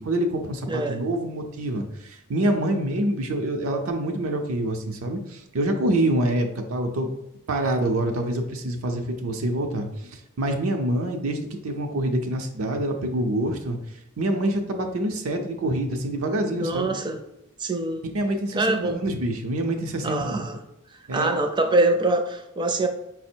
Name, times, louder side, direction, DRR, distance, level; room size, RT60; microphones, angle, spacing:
voice 1, 0.0-7.1 7.5-13.8 14.2-16.9 18.1-20.5 21.1-21.4, right 1 dB, 85° right, 3 dB, 0.6 m, -26 dB
voice 2, 0.7-1.0 16.6-17.2 17.6-18.0 18.5-19.0 20.0-20.6 21.1-22.9, right 2 dB, 20° right, 6 dB, 0.4 m, -24 dB
4.9 x 2.0 x 4.3 m, 0.89 s
head